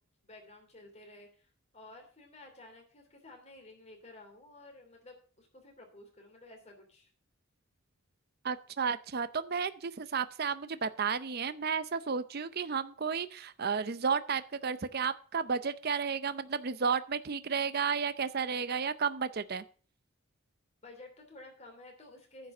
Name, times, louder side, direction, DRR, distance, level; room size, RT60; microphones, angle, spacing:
voice 1, 0.2-7.1 20.8-22.5, left 2 dB, 30° left, 2 dB, 3.0 m, -53 dB
voice 2, 8.4-19.6, right 6 dB, 45° right, 14 dB, 0.6 m, -32 dB
10.0 x 5.3 x 8.4 m, 0.41 s
head